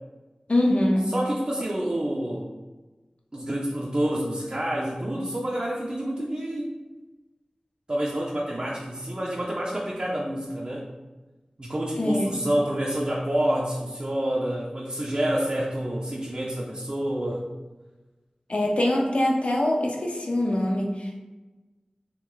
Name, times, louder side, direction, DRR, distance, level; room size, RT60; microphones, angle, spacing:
voice 1, 0.5-1.1 12.0-12.3 18.5-21.2, left 1 dB, 65° left, -1 dB, 0.7 m, -23 dB
voice 2, 1.1-2.5 3.3-6.8 7.9-10.9 11.6-17.5, right 1 dB, 40° right, -4 dB, 0.6 m, -28 dB
3.5 x 3.1 x 3.8 m, 1.2 s
wide cardioid pair, 65°, 2 cm